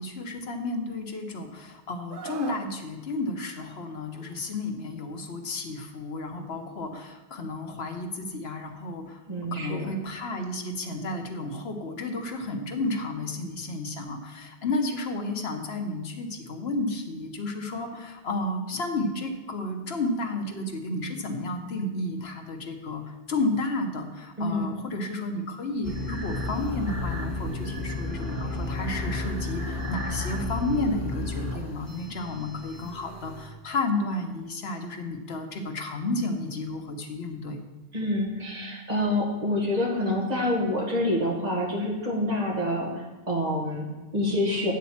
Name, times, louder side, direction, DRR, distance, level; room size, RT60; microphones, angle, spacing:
voice 1, 0.0-9.2 9.5-37.6, left 2 dB, 80° left, 4 dB, 1.2 m, -32 dB
Screaming, 2.1-2.7 4.1-4.4, right 5 dB, 60° right, 0.9 m, -39 dB
voice 2, 9.3-9.9 24.4-24.8 37.9-44.7, left 1 dB, 40° right, -2 dB, 1.9 m, -27 dB
sound 1, 25.8-33.5, left 2 dB, 60° left, 2.0 m, -32 dB
9.1 x 4.2 x 7.1 m, 1.2 s
omnidirectional pair, 1.0 m